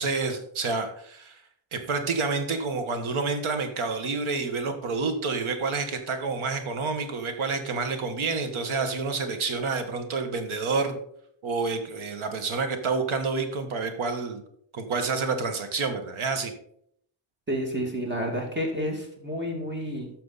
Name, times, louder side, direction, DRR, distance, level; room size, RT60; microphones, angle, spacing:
voice 1, 0.0-1.4 1.7-11.0 11.4-14.4 14.7-16.5, right 4 dB, 90° right, 7 dB, 1.6 m, -28 dB
voice 2, 17.5-20.1, equal, 20° right, 1 dB, 2.3 m, -30 dB
12.0 x 6.7 x 4.1 m, 0.67 s
wide cardioid pair, 165°, 47 cm